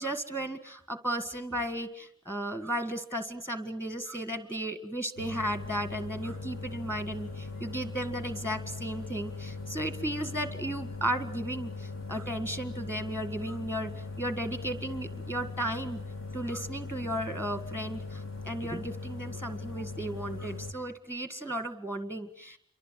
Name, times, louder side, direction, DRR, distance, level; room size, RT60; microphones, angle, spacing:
voice 1, 0.0-13.9 14.2-16.0 16.3-22.6, right 1 dB, 10° left, 9 dB, 1.7 m, -35 dB
sound 1, 5.2-20.7, left 3 dB, 70° left, 2.7 m, -40 dB
28.5 x 24.5 x 7.6 m, 0.68 s
head